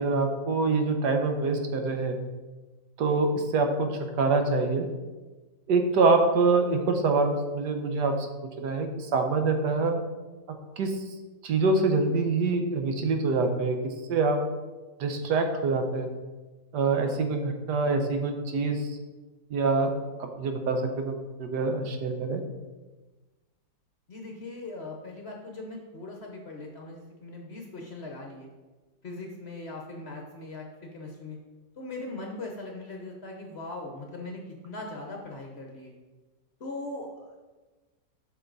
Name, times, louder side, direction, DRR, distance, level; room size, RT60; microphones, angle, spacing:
voice 1, 0.0-2.2 3.0-4.9 5.7-8.3 8.6-10.0 10.5-11.0 11.4-14.4 15.0-16.1 16.7-19.0 19.5-22.4, right 3 dB, 75° right, 5 dB, 1.4 m, -25 dB
voice 2, 24.1-28.5 29.0-31.4 31.8-35.9 36.6-37.4, left 2 dB, 45° left, 1 dB, 0.9 m, -40 dB
8.0 x 5.7 x 4.0 m, 1.2 s
omnidirectional pair, 1.9 m